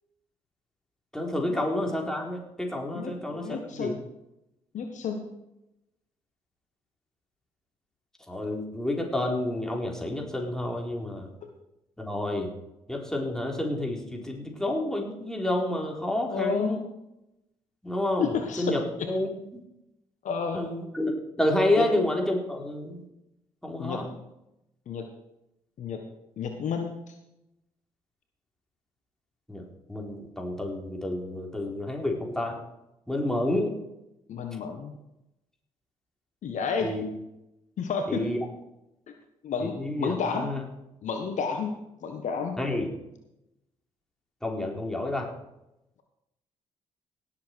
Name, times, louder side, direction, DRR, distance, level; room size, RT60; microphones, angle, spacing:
voice 1, 1.1-4.0 8.3-11.3 12.0-12.5 12.9-16.8 17.8-18.3 18.6-19.3 20.5-23.0 23.6-24.1 29.5-32.6 33.1-33.7 36.8-37.0 38.1-38.4 39.8-40.1 40.4-40.6 42.6-42.9 44.4-45.3, left 1 dB, 5° left, 0 dB, 4.1 m, -29 dB
voice 2, 2.9-4.0 4.7-5.3 16.3-16.8 18.2-19.1 20.2-20.6 21.8-21.9 23.8-24.1 24.9-25.0 25.8-26.0 26.4-27.2 34.3-34.9 36.4-36.9 37.8-38.2 39.4-40.5 41.0-41.7 42.0-42.6, left 6 dB, 55° left, 5 dB, 1.5 m, -31 dB
18.0 x 7.6 x 4.7 m, 0.87 s
hypercardioid pair, 45°, 15 cm